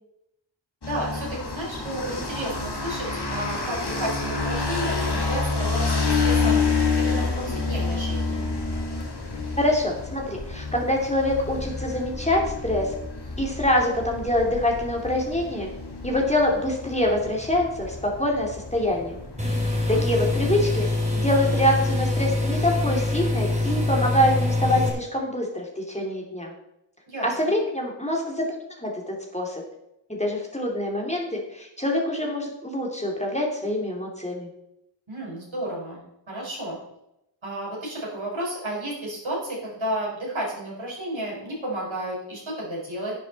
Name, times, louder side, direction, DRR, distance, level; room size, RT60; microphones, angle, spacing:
sound 1, 0.8-20.6, left 4 dB, 55° left, 2.2 m, -29 dB
voice 1, 0.8-6.6 7.0-8.4 19.7-20.0 27.1-27.3 35.1-36.8 37.4-43.1, right 1 dB, 85° right, -4 dB, 4.9 m, -32 dB
voice 2, 9.6-12.9 13.4-15.7 16.0-19.2 19.6-20.9 21.1-26.5 27.2-29.6 30.1-34.5, left 1 dB, 15° left, 0 dB, 2.6 m, -25 dB
sound 2, 19.4-24.9, left 2 dB, 15° right, 2.9 m, -24 dB
10.5 x 9.7 x 4.1 m, 0.83 s
wide cardioid pair, 65°, 46 cm